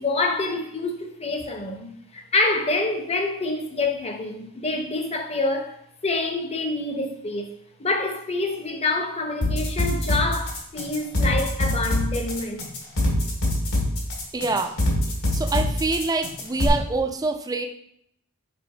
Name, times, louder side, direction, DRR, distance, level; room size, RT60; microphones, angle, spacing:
voice 1, 0.0-12.7, left 2 dB, 30° left, 0.7 m, -27 dB
sound 1, 9.4-16.7, left 1 dB, 80° left, 2.4 m, -23 dB
voice 2, 14.3-14.8 15.3-17.7, right 3 dB, 15° right, 0.4 m, -25 dB
5.0 x 4.2 x 4.7 m
head